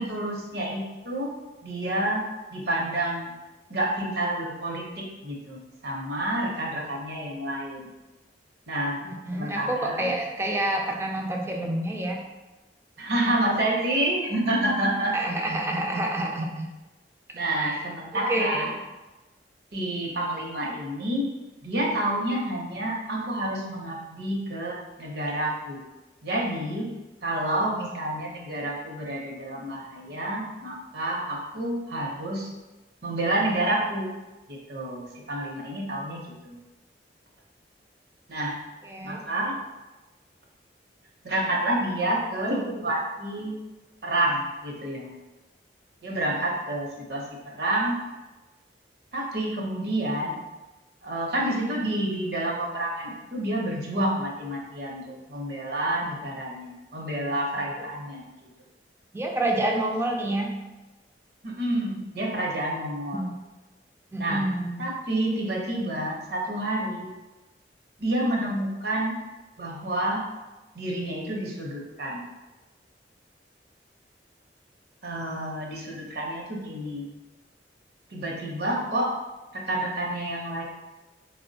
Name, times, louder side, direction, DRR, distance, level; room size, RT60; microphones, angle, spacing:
voice 1, 0.0-1.3 1.6-3.3 3.7-7.9 8.7-9.0 9.3-10.1 13.0-15.1 17.3-18.7 19.7-21.3 21.6-25.8 26.2-26.9 27.2-32.5 33.0-34.1 34.5-36.6 38.3-38.6 39.0-39.6 41.2-43.6 44.0-45.2 46.0-48.0 49.1-50.4 51.0-58.3 61.4-63.2 64.2-64.4 64.8-67.1 68.0-69.1 69.6-70.3 70.7-72.2 75.0-77.1 78.1-79.1 79.5-80.6, right 1 dB, 65° right, -2 dB, 0.7 m, -29 dB
voice 2, 9.0-12.2 15.1-16.7 17.6-17.8 18.1-18.7 38.8-39.2 59.1-60.6 63.1-63.4 64.1-64.9, right 1 dB, 15° right, 1 dB, 0.3 m, -28 dB
4.1 x 2.0 x 2.6 m, 1.1 s
head